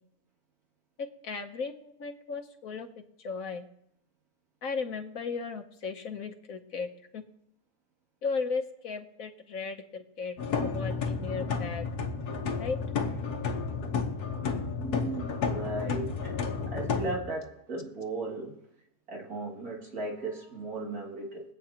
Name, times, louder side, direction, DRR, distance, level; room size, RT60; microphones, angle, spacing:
voice 1, 1.2-3.6 4.6-7.2 8.2-11.9 12.6-12.8, left 4 dB, 65° left, 5 dB, 1.3 m, -36 dB
sound 1, 10.4-17.2, left 5 dB, 80° left, 1.7 m, -31 dB
voice 2, 14.8-16.3 16.7-18.5 19.1-21.4, right 2 dB, 65° right, -2 dB, 2.9 m, -36 dB
23.5 x 8.4 x 2.9 m, 0.78 s
omnidirectional pair, 1.7 m